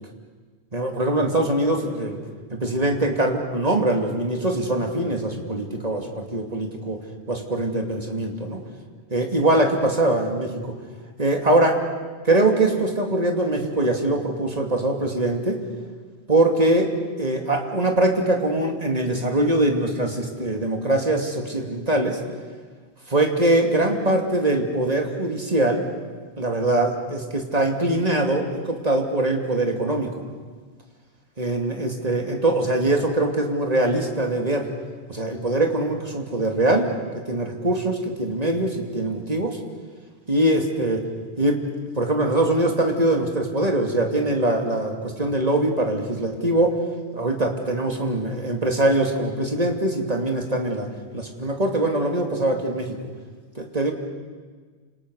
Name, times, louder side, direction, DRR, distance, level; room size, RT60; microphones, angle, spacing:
voice 1, 0.7-2.2 2.5-7.0 7.3-8.6 9.1-10.7 11.2-11.8 12.2-15.6 16.3-16.9 17.2-22.2 23.1-25.9 26.4-30.1 31.4-34.7 35.1-36.9 37.3-39.6 40.3-41.0 41.4-41.6 42.0-46.8 47.1-50.9 51.1-53.0 53.6-53.9, right 1 dB, 35° right, 2 dB, 2.8 m, -22 dB
29.0 x 27.5 x 6.5 m, 1.5 s
omnidirectional pair, 1.2 m